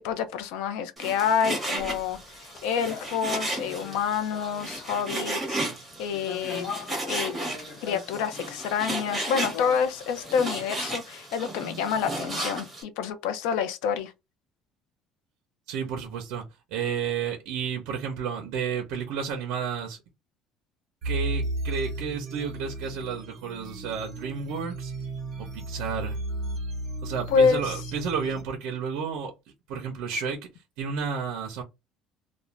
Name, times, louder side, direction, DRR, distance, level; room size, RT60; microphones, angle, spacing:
voice 1, 0.0-5.6 6.0-6.7 7.1-7.3 7.8-14.1 27.3-27.6, left 6 dB, 85° left, 0.5 m, -27 dB
Frying (food), 1.0-12.8, right 1 dB, 5° right, 1.0 m, -34 dB
sound 1, 1.8-5.1 6.1-10.4, left 5 dB, 45° left, 0.6 m, -42 dB
voice 2, 15.7-20.0 21.0-24.9 25.4-26.2 27.0-29.3 29.7-31.6, right 6 dB, 70° right, 0.6 m, -32 dB
sound 2, 21.0-28.4, right 1 dB, 35° right, 0.8 m, -34 dB
2.4 x 2.1 x 3.1 m
cardioid pair, 175°, 0 cm